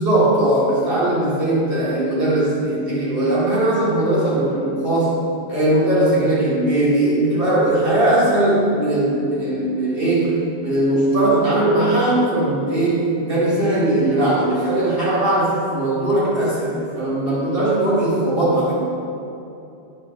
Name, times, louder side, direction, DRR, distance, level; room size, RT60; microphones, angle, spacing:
voice 1, 0.0-5.1 5.5-18.7, right 1 dB, 55° right, -7 dB, 1.9 m, -19 dB
8.0 x 5.6 x 3.1 m, 2.8 s
omnidirectional pair, 1.2 m